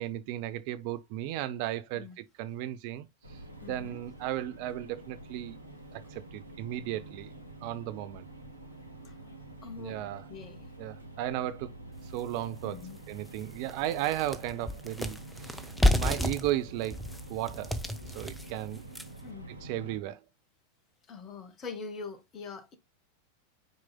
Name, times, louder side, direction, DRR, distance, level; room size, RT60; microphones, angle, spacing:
voice 1, 0.0-3.4 3.7-5.6 5.9-7.3 7.6-8.2 9.8-10.3 10.8-11.7 12.0-12.8 13.1-17.0 17.3-17.8 18.1-18.8 19.6-20.2, right 13 dB, 45° right, 0.6 m, -35 dB
sound 1, 3.2-20.0, right 2 dB, 90° right, 1.2 m, -47 dB
voice 2, 3.6-4.0 9.0-9.2 9.6-10.0 10.3-10.7 12.6-13.0 15.8-16.1 19.2-19.5 21.1-22.7, left 5 dB, 30° left, 1.4 m, -43 dB
sound 2, 12.2-12.3 12.8-12.9 13.3-19.3, left 1 dB, 5° left, 0.9 m, -31 dB
9.2 x 4.8 x 2.2 m
figure-of-eight pair, 90°, 0 cm